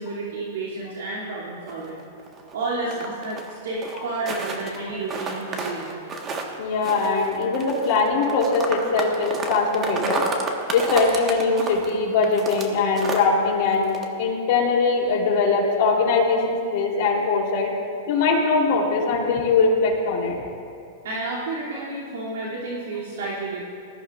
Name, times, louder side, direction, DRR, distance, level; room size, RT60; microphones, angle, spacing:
voice 1, 0.0-2.0 2.5-6.0 21.0-23.6, right 2 dB, 85° right, -6 dB, 2.7 m, -31 dB
sound 1, 1.7-3.5 3.8-4.8 5.1-6.5 6.8-12.7 13.0-13.3 13.6-14.0, right 3 dB, 25° right, 1.4 m, -30 dB
voice 2, 6.6-10.2 10.7-13.9 14.2-17.7 18.1-20.3, left 4 dB, 55° left, -3 dB, 3.4 m, -21 dB
20.0 x 14.0 x 2.5 m, 2.4 s
hypercardioid pair, 135°, 0 cm